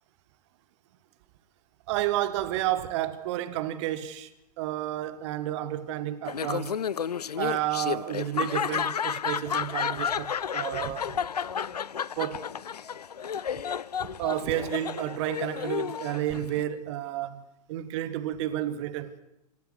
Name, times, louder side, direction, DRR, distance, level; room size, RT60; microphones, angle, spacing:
voice 1, 1.9-4.3 4.6-6.8 7.4-11.2 12.2-12.5 14.2-19.2, right 13 dB, 45° right, 1.7 m, -31 dB
Laughter, 6.3-16.6, left 7 dB, 75° left, 0.6 m, -32 dB
27.0 x 15.0 x 6.4 m
figure-of-eight pair, 100°, 20 cm